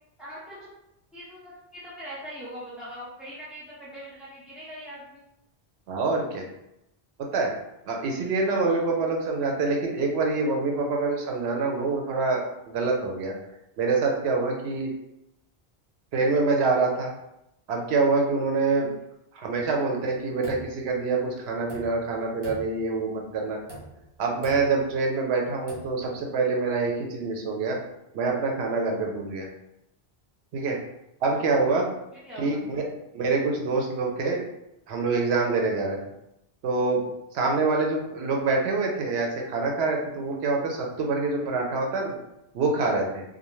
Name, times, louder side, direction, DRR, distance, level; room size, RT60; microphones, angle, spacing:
voice 1, 0.2-0.7 1.1-5.2 8.4-9.1 31.3-31.6 32.1-32.6, equal, ahead, -10 dB, 0.3 m, -42 dB
voice 2, 5.9-6.4 7.3-7.5 7.9-13.3 13.8-14.9 16.1-17.1 17.7-18.9 19.3-23.6 24.2-27.8 28.1-29.5 30.5-30.8 31.2-31.9 32.4-32.8 33.1-34.4 34.9-36.0 36.6-37.1 37.3-42.1 42.5-43.2, right 3 dB, 90° right, 1 dB, 0.9 m, -26 dB
sound 1, 20.0-21.2 21.6-22.2 22.4-23.1 23.6-24.1 24.4-24.9 25.6-26.1, right 1 dB, 40° right, 0.7 m, -42 dB
2.5 x 2.1 x 3.0 m, 0.85 s
omnidirectional pair, 1.0 m